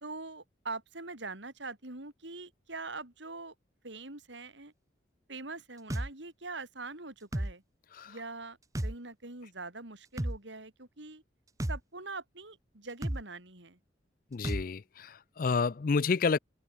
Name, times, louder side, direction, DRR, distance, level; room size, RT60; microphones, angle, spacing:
voice 1, 0.0-3.5 3.8-4.7 5.3-7.6 8.1-11.2 11.7-13.8, right 3 dB, 75° right, 3.7 m, -43 dB
sound 1, 5.9-6.1 7.3-7.5 8.8-8.9 10.2-10.4 11.6-11.8 13.0-13.2 14.4-14.6, right 1 dB, 15° right, 0.9 m, -32 dB
voice 2, 14.3-16.4, left 5 dB, 45° left, 0.4 m, -30 dB
open air
head